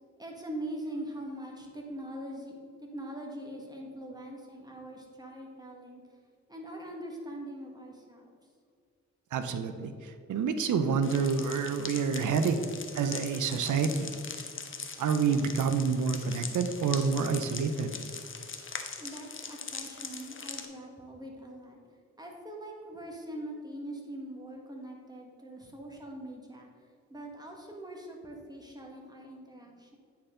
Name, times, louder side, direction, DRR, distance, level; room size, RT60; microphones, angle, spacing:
voice 1, 0.2-2.5 2.8-6.0 6.5-8.4 19.0-21.8 22.2-26.7 27.1-30.0, right 1 dB, 15° right, 0 dB, 1.6 m, -42 dB
voice 2, 9.3-12.6 13.0-14.1 15.0-17.9, right 5 dB, 90° right, 9 dB, 0.5 m, -28 dB
sound 1, 11.0-20.7, left 5 dB, 45° left, 0.8 m, -41 dB
9.3 x 4.4 x 3.7 m, 2.2 s
cardioid pair, 55°, 29 cm